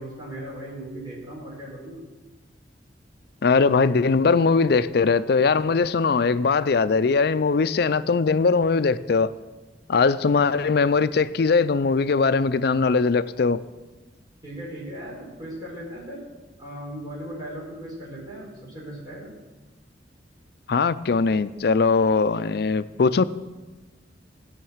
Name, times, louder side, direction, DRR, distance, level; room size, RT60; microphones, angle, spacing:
voice 1, 0.0-2.0 14.4-16.2 16.6-19.3, right 1 dB, 20° right, -5 dB, 4.8 m, -37 dB
voice 2, 3.4-9.3 9.9-13.6 20.7-23.3, left 4 dB, 60° left, 15 dB, 0.4 m, -20 dB
16.0 x 5.8 x 7.2 m, 1.2 s
head